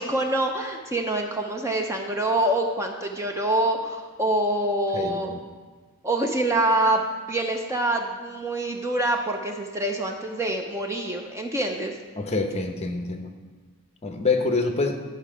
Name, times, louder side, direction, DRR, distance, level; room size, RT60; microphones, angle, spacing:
voice 1, 0.0-5.3 6.0-7.0 7.3-12.0, right 1 dB, 15° right, 3 dB, 0.6 m, -25 dB
voice 2, 4.9-5.4 12.2-13.3 14.0-15.0, left 3 dB, 30° left, 4 dB, 0.8 m, -26 dB
11.0 x 5.6 x 5.0 m, 1.4 s
head